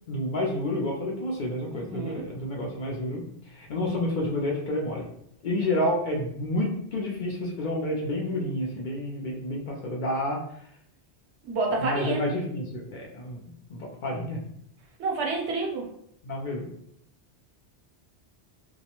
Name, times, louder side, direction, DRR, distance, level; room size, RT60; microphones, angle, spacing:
voice 1, 0.1-3.2 3.5-5.1 5.4-10.4 11.8-14.4 16.2-16.7, left 1 dB, 60° left, -1 dB, 0.6 m, -29 dB
voice 2, 1.7-2.2 11.4-12.3 15.0-15.9, right 3 dB, 90° right, 0 dB, 0.9 m, -29 dB
2.3 x 2.0 x 2.8 m, 0.71 s
omnidirectional pair, 1.1 m